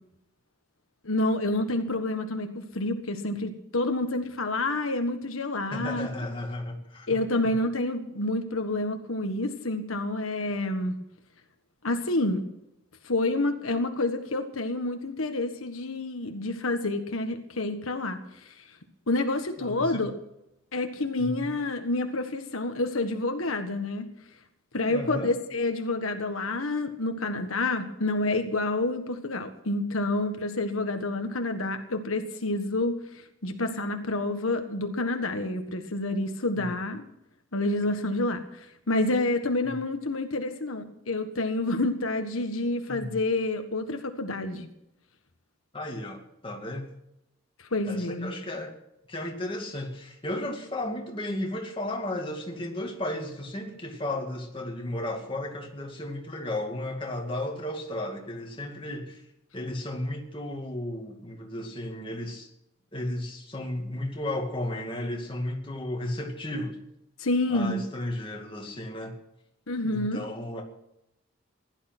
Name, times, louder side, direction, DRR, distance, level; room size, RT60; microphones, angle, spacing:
voice 1, 1.0-6.1 7.1-10.9 11.8-12.4 13.0-18.5 19.1-20.1 20.7-24.1 24.7-37.0 37.5-44.7 47.7-48.3 67.2-67.8 69.7-70.2, left 2 dB, 85° left, 6 dB, 1.5 m, -28 dB
voice 2, 5.7-7.5 19.6-20.1 21.2-21.5 24.9-25.3 36.6-36.7 42.9-43.2 45.7-46.9 47.8-48.7 49.1-59.2 59.5-62.5 62.9-66.8 67.5-69.2 69.8-70.6, left 1 dB, 25° left, 1 dB, 2.3 m, -34 dB
16.0 x 11.5 x 6.1 m, 0.82 s
head